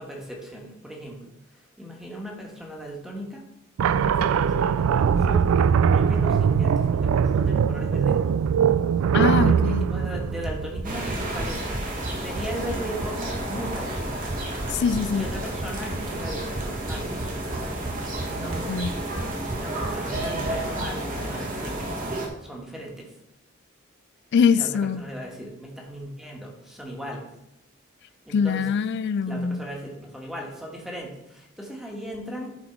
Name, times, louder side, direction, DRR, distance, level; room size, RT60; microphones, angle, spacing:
voice 1, 0.0-3.4 4.2-8.4 9.4-14.2 15.1-17.1 18.3-18.7 19.5-21.8 22.4-23.1 24.5-27.3 28.2-28.7 29.3-32.5, equal, ahead, -1 dB, 1.5 m, -37 dB
sound 1, 3.8-11.2, right 7 dB, 80° right, 0.3 m, -21 dB
voice 2, 9.1-9.9 14.7-15.3 18.7-18.9 24.3-25.0 28.3-29.6, left 6 dB, 55° left, 15 dB, 0.3 m, -23 dB
sound 2, 9.8-21.2 21.5-21.6 21.8-21.9, right 1 dB, 20° right, 0.7 m, -35 dB
sound 3, 10.8-22.3, right 1 dB, 40° right, 1.7 m, -31 dB
11.0 x 4.1 x 4.5 m, 0.85 s
head